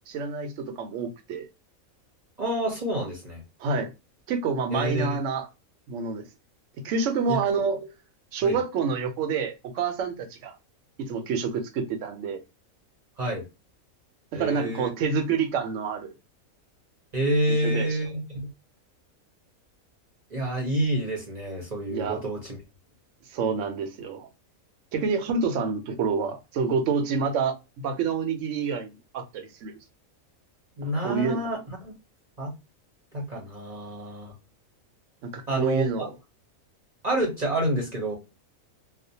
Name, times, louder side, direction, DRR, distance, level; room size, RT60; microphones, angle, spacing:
voice 1, 0.1-1.5 3.6-3.9 4.3-5.5 5.9-6.3 6.8-7.9 8.3-10.6 11.0-12.4 14.3-16.1 17.5-18.0 21.9-22.2 23.3-24.3 24.9-27.5 27.8-29.7 30.9-31.4 35.2-36.1, right 5 dB, 70° right, 0.8 m, -28 dB
voice 2, 2.4-3.4 4.7-5.2 7.3-7.4 8.4-8.6 13.2-13.4 14.3-14.9 17.1-18.5 20.3-22.6 30.8-31.9 32.4-32.5 33.1-34.3 35.5-36.1 37.0-38.2, right 1 dB, 40° right, 0.7 m, -28 dB
2.4 x 2.1 x 2.7 m
omnidirectional pair, 1.5 m